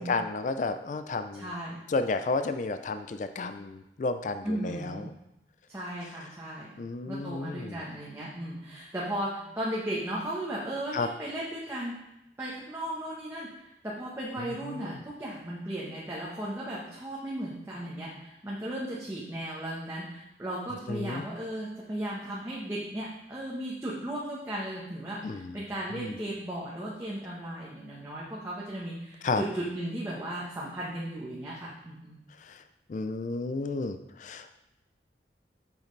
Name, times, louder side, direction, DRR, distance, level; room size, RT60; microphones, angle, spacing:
voice 1, 0.0-1.5 1.9-5.1 6.8-7.8 10.9-11.1 14.7-15.0 20.9-21.2 25.2-25.6 25.9-26.2 29.2-29.4 32.4-32.6 32.9-34.5, left 3 dB, 45° left, 9 dB, 0.4 m, -32 dB
voice 2, 1.3-1.8 4.4-5.0 5.7-6.7 7.1-12.0 12.4-32.2, right 1 dB, 15° right, -6 dB, 1.1 m, -36 dB
8.4 x 6.5 x 3.2 m, 0.88 s
head